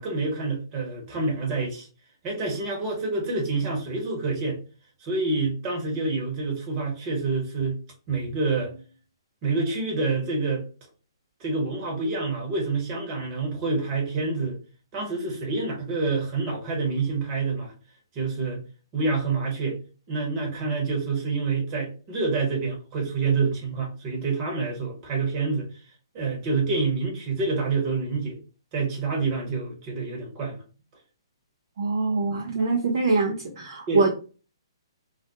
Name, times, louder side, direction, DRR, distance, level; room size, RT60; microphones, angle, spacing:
voice 1, 0.0-1.9 2.2-4.6 5.0-7.8 8.1-8.8 9.4-10.6 11.4-14.6 14.9-17.7 18.1-18.6 18.9-19.8 20.1-25.7 26.1-28.4 28.7-30.6 33.9-34.0, right 3 dB, 30° right, 0 dB, 1.0 m, -27 dB
voice 2, 31.8-34.1, right 3 dB, 55° right, -1 dB, 0.5 m, -24 dB
2.4 x 2.1 x 2.8 m, 0.35 s
figure-of-eight pair, 125°, 3 cm